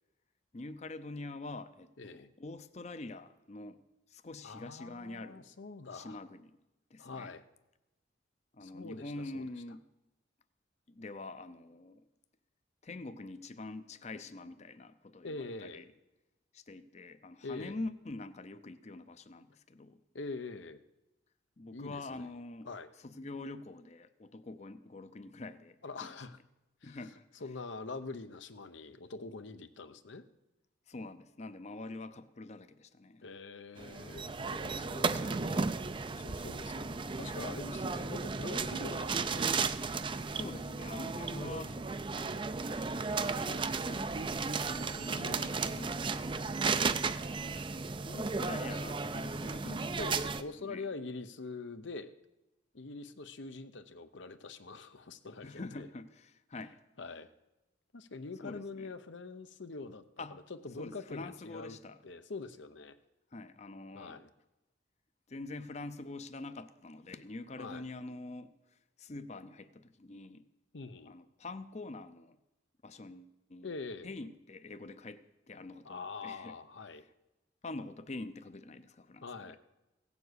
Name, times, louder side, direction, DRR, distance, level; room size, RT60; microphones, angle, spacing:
voice 1, 0.5-3.8 4.1-5.5 5.9-6.6 6.9-7.3 8.5-9.8 10.9-12.0 12.8-15.8 16.5-20.0 21.6-22.7 23.0-26.1 26.8-27.3 30.9-33.2 40.3-41.7 43.4-44.4 45.0-46.5 48.0-50.2 50.6-50.9 55.4-56.8 58.4-58.9 60.2-60.4 60.8-62.0 63.3-64.2 65.3-68.5 69.0-70.4 71.1-72.4 72.8-73.7 74.0-76.5 77.6-79.6, left 2 dB, 35° left, 12 dB, 0.6 m, -45 dB
voice 2, 2.0-2.3 4.4-6.2 7.0-7.4 8.6-9.5 15.2-15.8 17.4-17.8 20.1-20.8 21.7-22.3 22.7-22.9 25.8-26.4 26.8-27.0 27.4-30.2 33.2-35.7 36.1-39.5 41.3-41.8 45.2-45.8 50.0-52.1 52.7-55.9 57.0-57.3 57.9-61.8 62.0-63.0 63.9-64.3 67.6-67.9 70.7-71.1 73.6-74.1 75.8-77.1 79.2-79.6, left 3 dB, 80° left, 10 dB, 0.8 m, -44 dB
sound 1, 33.8-50.4, right 4 dB, 25° right, 0.4 m, -34 dB
16.5 x 7.2 x 8.1 m, 0.99 s
head